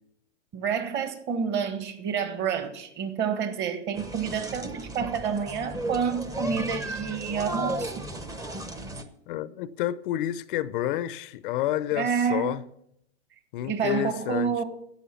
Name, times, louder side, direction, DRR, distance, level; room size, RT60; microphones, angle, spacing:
voice 1, 0.5-8.0 11.9-12.6 13.6-14.6, right 7 dB, 30° right, 1.5 m, -29 dB
sound 1, 3.9-9.0, right 1 dB, 10° right, 0.8 m, -34 dB
voice 2, 9.3-12.6 13.5-14.5, left 13 dB, 50° left, 0.6 m, -29 dB
11.5 x 8.2 x 7.0 m
hypercardioid pair, 135°, 35 cm